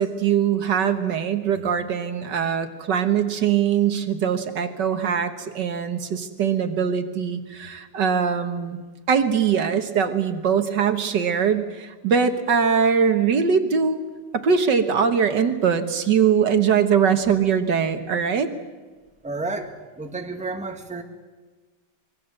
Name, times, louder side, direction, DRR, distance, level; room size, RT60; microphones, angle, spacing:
voice 1, 0.0-8.8 9.1-14.0 14.3-18.5, right 7 dB, 70° right, 8 dB, 1.9 m, -22 dB
voice 2, 19.2-21.0, right 3 dB, 5° right, 5 dB, 1.5 m, -31 dB
25.0 x 21.5 x 7.9 m, 1.3 s
omnidirectional pair, 2.0 m